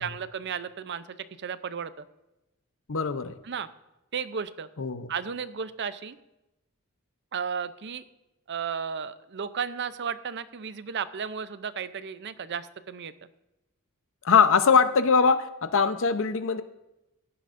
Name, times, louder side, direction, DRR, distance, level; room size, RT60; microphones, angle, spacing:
voice 1, 0.0-2.0 3.4-3.7 4.1-4.7 5.1-6.2 7.3-8.0 8.5-13.1, right 6 dB, 55° right, 14 dB, 0.6 m, -34 dB
voice 2, 2.9-3.3 4.8-5.1 14.2-16.6, left 5 dB, 65° left, 11 dB, 0.8 m, -22 dB
15.0 x 11.0 x 2.6 m, 0.94 s
head